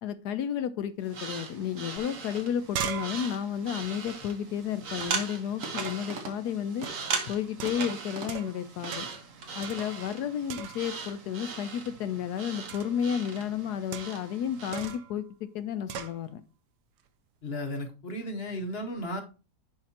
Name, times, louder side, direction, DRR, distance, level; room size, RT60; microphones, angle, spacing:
voice 1, 0.0-6.9 7.3-9.1 9.5-15.2 15.5-16.4, left 9 dB, 70° left, 1.1 m, -32 dB
sound 1, 1.0-14.9, right 5 dB, 50° right, 1.3 m, -39 dB
sound 2, 2.0-2.1 2.3-5.1 5.8-6.2 6.8-7.1 7.6-8.6 8.9-9.3 9.6-10.2 10.5-11.1 12.7-13.0 13.9-14.3 14.7-15.1 15.9-16.2, right 8 dB, 75° right, 1.3 m, -39 dB
voice 2, 17.4-19.2, left 1 dB, 45° left, 1.0 m, -34 dB
10.5 x 4.9 x 2.8 m
omnidirectional pair, 1.9 m